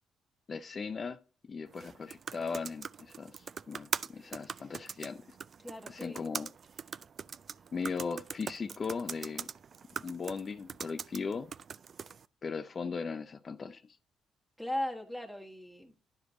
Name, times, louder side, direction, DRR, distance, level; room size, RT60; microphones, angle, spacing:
voice 1, 0.5-1.2 1.5-5.2 5.9-6.5 7.7-9.5 10.0-11.5 12.4-14.0, left 5 dB, 40° left, 0.4 m, -38 dB
sound 1, 1.7-12.3, right 6 dB, 50° right, 0.3 m, -42 dB
voice 2, 5.6-6.3 14.6-15.9, left 1 dB, 5° right, 1.6 m, -38 dB
10.5 x 5.0 x 4.0 m
cardioid pair, 90°, 0 cm